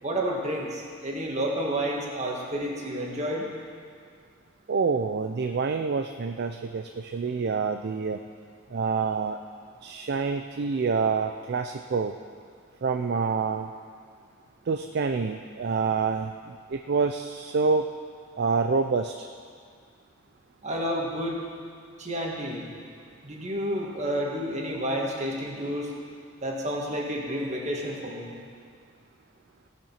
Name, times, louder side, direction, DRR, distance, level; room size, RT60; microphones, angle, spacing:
voice 1, 0.0-3.5 20.6-21.4 22.0-22.7 23.2-25.9 26.4-28.3, equal, 35° right, -2 dB, 1.8 m, -30 dB
voice 2, 4.7-8.2 8.7-9.4 9.8-12.2 12.8-13.7 14.7-17.9 18.4-19.3, right 4 dB, 50° right, 7 dB, 0.4 m, -27 dB
17.0 x 7.6 x 5.7 m, 2.1 s
head